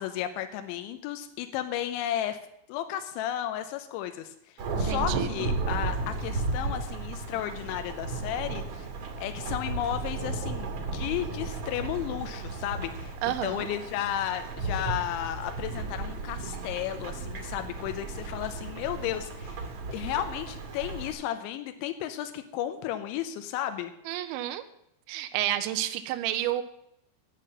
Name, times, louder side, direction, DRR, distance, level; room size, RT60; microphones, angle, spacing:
voice 1, 0.0-2.4 2.7-8.9 9.2-13.1 13.4-19.6 19.9-23.9, left 11 dB, 80° left, 8 dB, 2.9 m, -33 dB
Thunderstorm / Rain, 4.6-21.1, right 3 dB, 50° right, 1.8 m, -34 dB
voice 2, 4.7-5.4 13.2-13.7 24.1-24.6 25.1-26.6, right 13 dB, 80° right, 9 dB, 2.8 m, -30 dB
9.4 x 8.8 x 7.7 m, 0.77 s
omnidirectional pair, 5.7 m